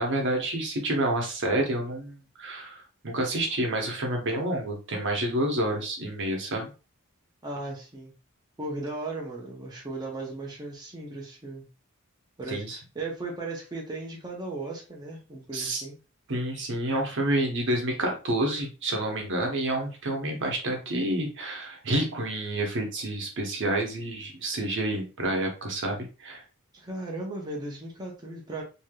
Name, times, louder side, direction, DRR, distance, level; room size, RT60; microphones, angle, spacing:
voice 1, 0.0-6.7 12.5-12.8 15.5-15.8 16.3-26.4, right 1 dB, 60° right, 2 dB, 0.9 m, -29 dB
voice 2, 7.4-8.1 8.6-11.7 12.4-16.0 26.7-28.6, right 2 dB, 20° right, -2 dB, 0.6 m, -36 dB
3.2 x 2.7 x 2.2 m, 0.33 s
head